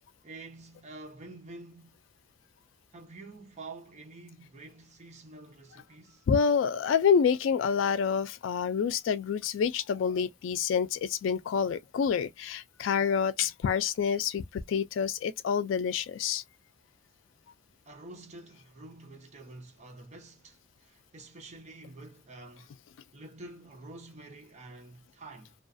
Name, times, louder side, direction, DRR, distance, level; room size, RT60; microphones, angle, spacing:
voice 1, 0.2-2.0 2.9-6.3 17.8-22.7 23.1-25.5, right 2 dB, 35° right, 0.8 m, -48 dB
voice 2, 6.3-16.4, left 6 dB, 80° left, 0.3 m, -27 dB
2.3 x 2.3 x 2.5 m
head